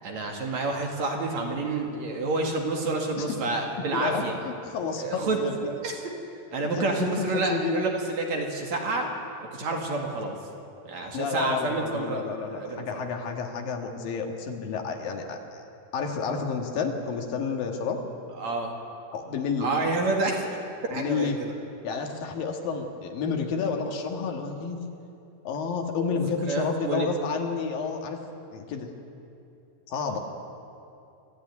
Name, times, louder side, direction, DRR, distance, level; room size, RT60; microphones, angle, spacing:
voice 1, 0.0-4.3 5.0-6.1 6.5-9.1 9.5-10.3 10.8-13.0 18.4-18.7 19.6-20.5 20.8-21.5 26.1-26.2 26.5-27.1 30.0-30.2, right 3 dB, 55° right, 1 dB, 3.2 m, -29 dB
voice 2, 3.9-5.5 6.7-7.9 11.1-15.6 15.9-18.0 19.1-19.7 20.9-21.4 21.8-24.8 25.4-28.2 28.5-28.9 29.9-30.2, left 5 dB, 75° left, 3 dB, 3.4 m, -30 dB
24.5 x 14.5 x 9.6 m, 2.7 s
omnidirectional pair, 4.1 m